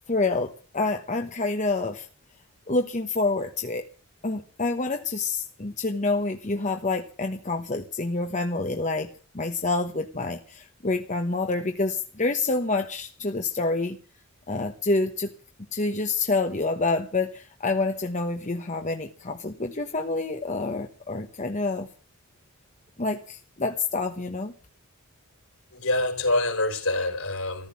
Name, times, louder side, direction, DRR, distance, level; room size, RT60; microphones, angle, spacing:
voice 1, 0.1-2.1 2.7-3.8 4.2-9.1 9.3-14.0 14.5-15.3 15.7-21.9 23.0-24.5, left 3 dB, 35° left, 1.1 m, -27 dB
voice 2, 25.7-27.7, left 2 dB, 70° left, 4.3 m, -26 dB
14.5 x 13.5 x 7.1 m
head